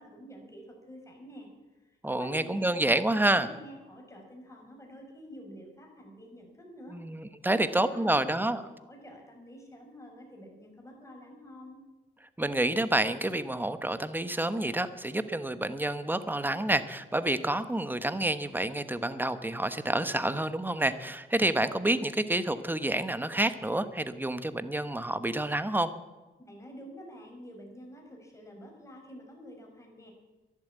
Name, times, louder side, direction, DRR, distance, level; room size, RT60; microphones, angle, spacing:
voice 1, 0.0-11.8 26.4-30.1, equal, 15° left, 1 dB, 5.2 m, -48 dB
voice 2, 2.0-3.5 6.9-8.6 12.4-25.9, right 1 dB, 10° right, 12 dB, 1.1 m, -28 dB
11.5 x 11.5 x 8.2 m, 1.1 s
cardioid pair, 80°, 19 cm